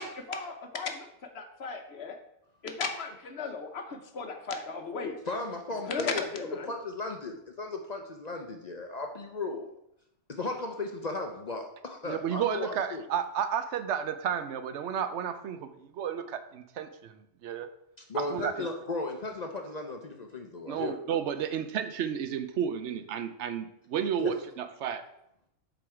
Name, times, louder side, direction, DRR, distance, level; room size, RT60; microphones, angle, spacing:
voice 1, 0.0-2.2 2.6-5.2 5.9-6.7, left 4 dB, 60° left, 6 dB, 1.0 m, -36 dB
voice 2, 5.3-6.2 6.7-9.7 10.3-13.0 18.1-21.0 24.2-24.3, left 2 dB, 45° left, 3 dB, 0.6 m, -36 dB
voice 3, 12.1-17.1 17.4-17.7 18.1-18.7 20.7-25.0, right 8 dB, 70° right, 10 dB, 0.9 m, -32 dB
7.4 x 3.9 x 4.8 m, 0.79 s
omnidirectional pair, 1.3 m